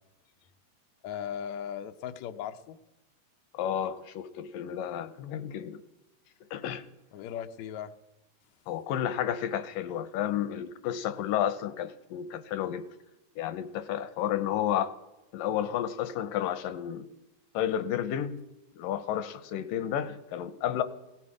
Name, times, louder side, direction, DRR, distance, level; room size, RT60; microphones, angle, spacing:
voice 1, 1.0-2.8 7.1-7.9, left 9 dB, 70° left, 1.9 m, -37 dB
voice 2, 3.5-5.8 6.5-6.9 8.7-12.9 13.4-14.9 15.3-17.1 17.5-18.4 18.8-20.8, left 10 dB, 90° left, 2.4 m, -31 dB
18.0 x 16.0 x 4.9 m
omnidirectional pair, 3.8 m